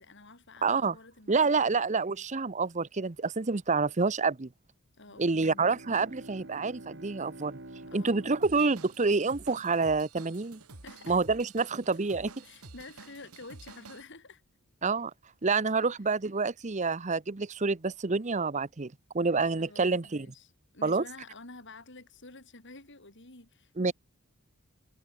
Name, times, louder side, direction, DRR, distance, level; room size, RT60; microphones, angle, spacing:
voice 1, 0.0-1.8 5.0-5.8 7.9-8.3 10.8-11.2 12.4-14.4 15.8-15.9 19.6-23.9, left 3 dB, 55° left, 4.6 m, -50 dB
voice 2, 0.6-1.0 1.3-4.5 5.2-7.6 7.9-10.6 11.1-12.3 14.8-15.1 15.4-20.3 20.8-21.0 23.8-23.9, right 4 dB, 30° right, 0.7 m, -28 dB
Bowed string instrument, 5.0-9.8, right 2 dB, 55° right, 2.2 m, -48 dB
Drum kit / Drum, 8.4-14.0, right 3 dB, 85° right, 2.8 m, -50 dB
head